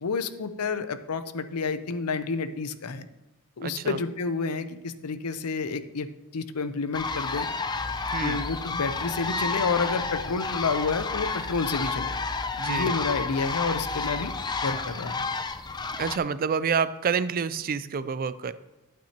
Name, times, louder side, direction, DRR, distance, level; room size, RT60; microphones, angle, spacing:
voice 1, 0.0-3.1 3.6-7.5 8.2-12.2 12.7-14.3 14.6-15.3, left 4 dB, 85° left, 11 dB, 0.6 m, -29 dB
voice 2, 3.6-4.0 8.1-8.4 12.6-13.0 16.0-18.5, right 6 dB, 40° right, 15 dB, 0.4 m, -28 dB
sound 1, 6.9-16.2, left 4 dB, 20° left, 0.4 m, -30 dB
11.5 x 8.7 x 2.9 m, 1.0 s
head